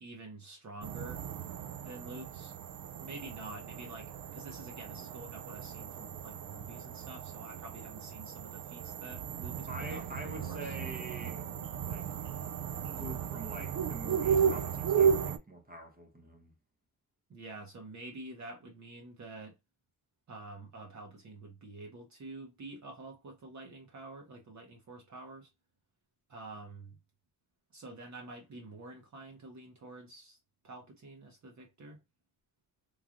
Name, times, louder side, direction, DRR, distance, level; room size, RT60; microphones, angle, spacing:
voice 1, 0.0-1.2 1.8-2.5 3.0-10.0 10.4-10.7 17.3-19.6 20.3-25.5 26.3-27.0 27.7-30.4 30.6-32.0, right 2 dB, 55° right, 0.8 m, -48 dB
sound 1, 0.8-15.4, right 7 dB, 75° right, 0.5 m, -35 dB
voice 2, 9.7-11.5 11.8-12.3 12.9-16.5, right 1 dB, 25° right, 0.9 m, -45 dB
3.2 x 2.3 x 2.4 m
cardioid pair, 80°, 35 cm